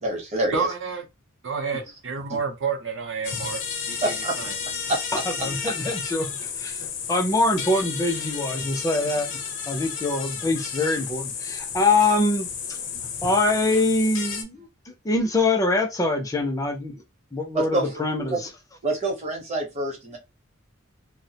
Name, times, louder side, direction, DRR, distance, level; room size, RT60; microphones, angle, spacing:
voice 1, 0.0-0.7 4.0-4.4 4.9-5.0 8.1-8.2 17.5-18.0 18.3-18.4 18.8-20.2, right 2 dB, 35° right, 0.8 m, -26 dB
voice 2, 0.5-1.0 1.4-3.6 3.9-4.5 9.0-9.1, right 5 dB, 60° right, 0.6 m, -29 dB
sound 1, 3.2-14.4, left 6 dB, 65° left, 0.7 m, -32 dB
voice 3, 5.4-9.4 9.7-12.8 13.2-16.9 17.3-18.5, left 2 dB, 15° left, 0.4 m, -24 dB
2.3 x 2.1 x 2.7 m
head